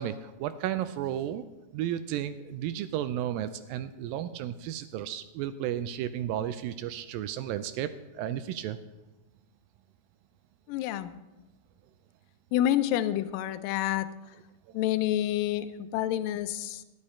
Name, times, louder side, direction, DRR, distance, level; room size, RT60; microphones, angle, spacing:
voice 1, 0.0-1.5 1.7-8.8 14.7-14.8, right 11 dB, 80° right, 12 dB, 2.1 m, -33 dB
voice 2, 10.7-11.1 12.5-14.4 14.7-16.8, left 12 dB, 80° left, 12 dB, 2.1 m, -28 dB
13.0 x 11.0 x 4.3 m, 1.0 s
omnidirectional pair, 4.4 m